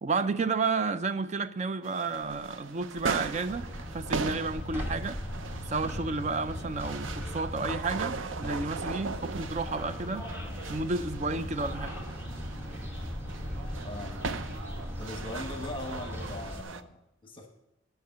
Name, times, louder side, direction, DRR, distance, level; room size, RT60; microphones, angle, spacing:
voice 1, 0.0-3.7 3.9-5.2 5.6-10.2 10.7-12.0, right 4 dB, 35° right, 0.5 m, -31 dB
sound 1, 1.8-16.8, right 4 dB, 85° right, 0.6 m, -39 dB
Basketball Game External Teenagers, 3.5-16.6, equal, 10° right, 1.2 m, -38 dB
voice 2, 13.8-14.2 15.0-17.5, left 2 dB, 25° left, 1.1 m, -40 dB
9.6 x 5.8 x 7.9 m
head